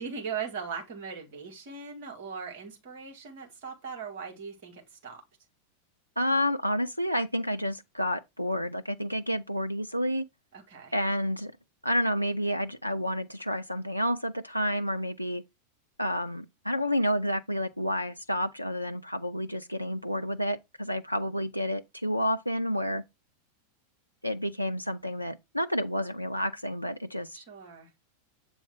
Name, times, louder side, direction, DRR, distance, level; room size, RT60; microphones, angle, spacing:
voice 1, 0.0-5.2 10.5-10.9 27.3-27.9, right 6 dB, 50° right, 2.1 m, -39 dB
voice 2, 6.2-10.2 10.9-11.5 11.8-15.4 16.0-23.0 24.2-27.4, equal, 90° right, 0.3 m, -30 dB
7.5 x 3.8 x 3.7 m
figure-of-eight pair, 90°, 0 cm